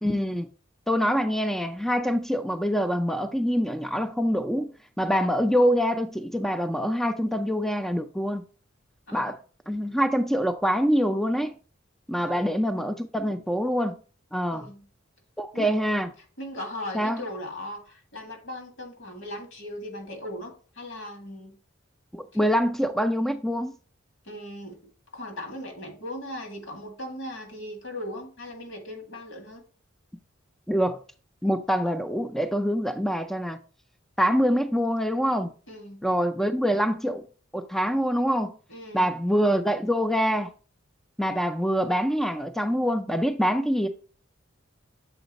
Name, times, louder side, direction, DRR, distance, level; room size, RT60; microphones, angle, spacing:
voice 1, 0.0-0.5 0.9-8.4 9.1-9.4 9.7-11.5 12.1-14.0 14.3-14.7 15.4-16.1 16.9-17.2 22.1-23.7 30.7-31.0 31.4-33.6 34.2-35.5 36.0-37.3 37.5-38.5 38.9-40.5 41.2-43.9, equal, ahead, 0.3 m, -25 dB
voice 2, 14.5-14.9 15.5-15.7 16.4-21.6 24.2-24.8 25.1-29.6 35.7-36.0 38.7-39.1, left 1 dB, 80° left, 1.9 m, -38 dB
7.1 x 3.9 x 4.0 m
head